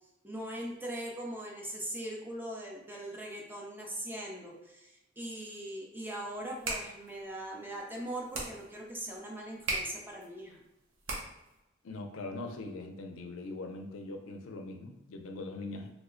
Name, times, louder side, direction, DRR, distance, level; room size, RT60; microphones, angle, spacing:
voice 1, 0.2-10.6, right 1 dB, 10° right, -2 dB, 0.6 m, -40 dB
sound 1, 6.4-11.6, right 2 dB, 85° right, 0.8 m, -40 dB
voice 2, 11.8-15.9, left 2 dB, 80° left, 5 dB, 0.5 m, -41 dB
3.0 x 2.1 x 3.7 m, 0.92 s
head